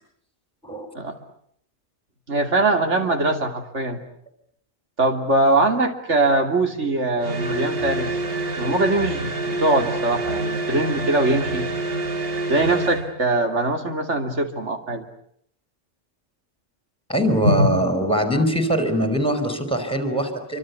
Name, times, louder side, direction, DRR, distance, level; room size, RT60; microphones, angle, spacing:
voice 1, 2.3-4.0 5.0-8.1 8.6-11.7 12.5-15.1 17.4-17.7, right 2 dB, 65° right, 5 dB, 3.2 m, -22 dB
sound 1, 7.2-13.1, right 2 dB, 50° right, 2.1 m, -27 dB
voice 2, 17.1-20.6, right 1 dB, 5° left, 7 dB, 4.7 m, -22 dB
26.5 x 25.0 x 8.4 m, 0.69 s
omnidirectional pair, 1.3 m